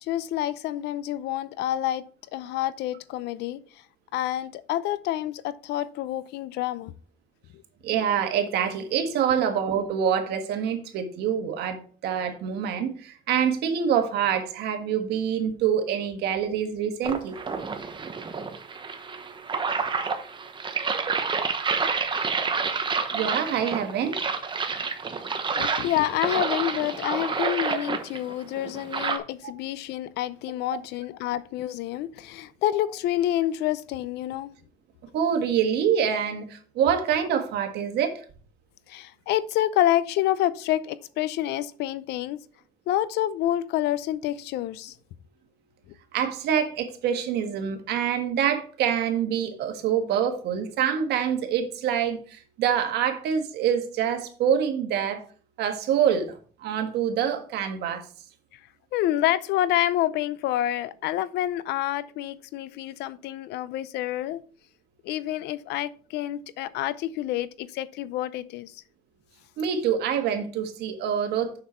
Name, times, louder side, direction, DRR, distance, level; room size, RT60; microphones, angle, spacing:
voice 1, 0.0-2.0 2.3-3.6 4.1-6.9 9.3-9.4 25.5-34.5 38.9-42.4 42.9-44.9 58.9-64.4 65.0-68.8, left 13 dB, 85° left, 0.6 m, -28 dB
voice 2, 7.8-17.4 23.1-24.3 29.4-29.5 30.7-30.8 35.1-38.1 46.1-55.2 55.6-58.0 69.6-71.6, right 8 dB, 80° right, 1.6 m, -26 dB
sound 1, 17.0-29.2, right 5 dB, 30° right, 1.1 m, -29 dB
6.7 x 6.5 x 4.4 m
cardioid pair, 110°, 17 cm